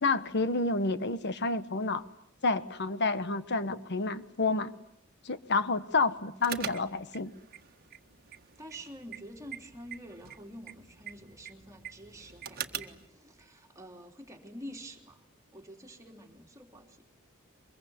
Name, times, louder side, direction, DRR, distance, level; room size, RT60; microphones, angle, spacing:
voice 1, 0.0-2.0 2.4-4.7 5.2-7.3, left 3 dB, 55° left, 12 dB, 1.3 m, -29 dB
sound 1, 6.4-13.1, right 8 dB, 45° right, 1.6 m, -44 dB
voice 2, 8.6-15.2 15.5-17.0, equal, 15° right, 2 dB, 3.2 m, -48 dB
24.0 x 22.5 x 9.5 m, 0.74 s
head